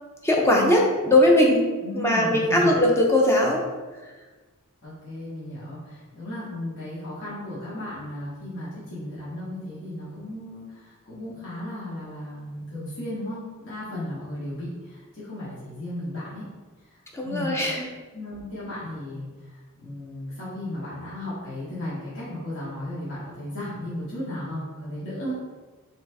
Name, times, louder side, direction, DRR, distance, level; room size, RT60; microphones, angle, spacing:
voice 1, 0.2-1.7 1.9-3.6 17.1-17.8, left 1 dB, 10° left, -1 dB, 0.6 m, -19 dB
voice 2, 1.8-2.7 4.8-16.4 17.2-17.8 18.1-25.3, left 1 dB, 55° left, -9 dB, 1.3 m, -35 dB
3.9 x 3.1 x 3.4 m, 1.3 s
head